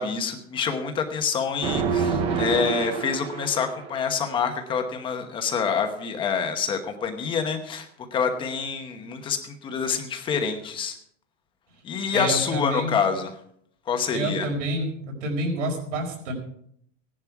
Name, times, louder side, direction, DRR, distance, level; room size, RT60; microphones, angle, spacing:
voice 1, 0.0-10.9 11.8-13.3 13.9-14.5, left 6 dB, 15° left, 6 dB, 1.0 m, -27 dB
sound 1, 1.6-4.0, right 6 dB, 15° right, 0.6 m, -27 dB
voice 2, 12.1-13.0 14.1-16.3, right 1 dB, 70° right, 0 dB, 4.9 m, -28 dB
16.5 x 11.0 x 4.7 m, 0.68 s
supercardioid pair, 180°, 38 cm